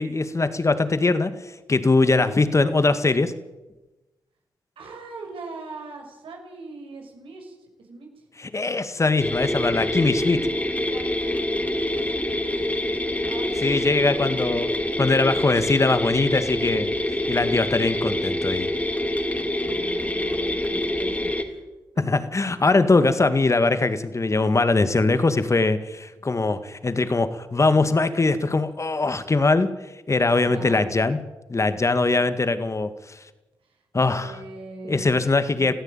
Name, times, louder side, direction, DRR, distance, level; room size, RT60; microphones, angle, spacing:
voice 1, 0.0-1.3 1.7-3.3 8.4-10.4 13.6-16.9 17.3-18.7 22.1-29.7 30.1-31.2 31.5-32.9 33.9-34.4 34.9-35.7, left 3 dB, 35° left, 11 dB, 2.0 m, -21 dB
voice 2, 2.1-2.7 4.8-8.2 10.2-14.6 19.6-21.6 21.9-22.0 30.4-30.9 33.7-33.8 34.2-35.3 35.6-35.7, right 3 dB, 80° right, 2 dB, 6.1 m, -41 dB
sound 1, 9.2-21.4, left 1 dB, 15° left, 3.7 m, -26 dB
20.5 x 14.5 x 9.0 m, 1.1 s
cardioid pair, 55°, 9 cm